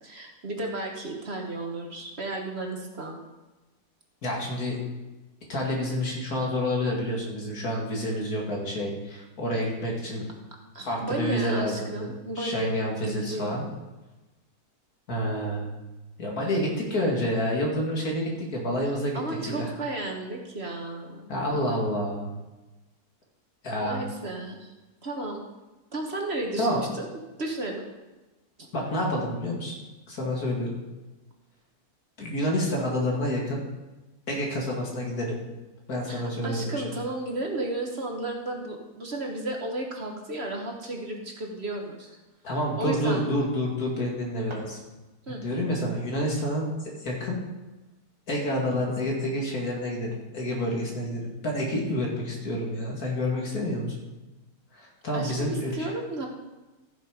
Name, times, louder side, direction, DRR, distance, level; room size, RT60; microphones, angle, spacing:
voice 1, 0.0-3.2 10.7-12.8 13.0-13.7 19.1-21.3 23.8-24.7 25.0-25.4 25.9-27.1 27.4-27.9 36.1-42.1 42.8-43.2 45.3-45.4 55.1-56.3, right 2 dB, 45° right, 1 dB, 1.6 m, -33 dB
voice 2, 4.2-4.8 5.5-10.3 10.8-12.1 12.4-13.6 15.1-15.7 16.2-19.7 21.3-22.3 23.6-24.0 26.6-26.8 28.7-29.8 30.1-30.8 32.2-33.6 34.3-35.4 35.9-37.0 42.4-44.8 45.3-47.4 48.3-54.0 54.7-55.9, equal, 70° left, -1 dB, 2.7 m, -28 dB
sound 1, 44.4-45.5, right 1 dB, 20° right, 2.0 m, -48 dB
14.5 x 6.1 x 5.1 m, 1.1 s
omnidirectional pair, 1.6 m